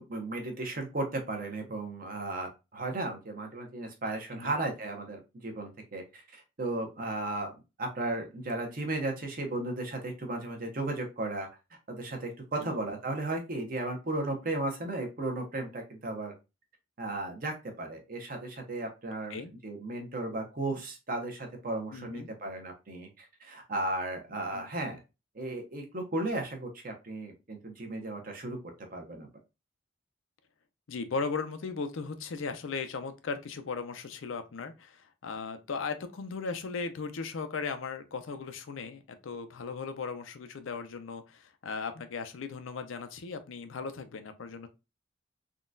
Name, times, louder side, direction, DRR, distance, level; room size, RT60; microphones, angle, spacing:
voice 1, 0.0-7.5 7.8-11.5 11.9-16.3 17.0-25.0 25.3-28.6 28.9-29.3, right 2 dB, 45° right, 0.8 m, -35 dB
voice 2, 21.9-22.3 24.5-24.7 30.9-44.7, left 4 dB, 75° left, 0.5 m, -37 dB
3.7 x 2.3 x 2.5 m
head